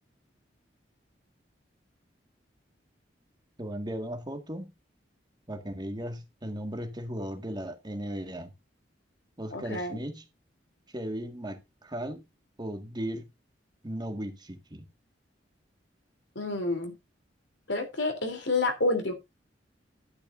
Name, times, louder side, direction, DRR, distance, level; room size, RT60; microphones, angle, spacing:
voice 1, 3.6-4.7 5.5-8.5 9.4-10.2 10.9-12.2 12.6-13.3 13.8-14.9, right 1 dB, 25° right, 1.8 m, -36 dB
voice 2, 9.5-10.0 16.3-16.9 17.7-19.1, left 2 dB, 85° left, 3.3 m, -29 dB
11.5 x 10.5 x 2.6 m
head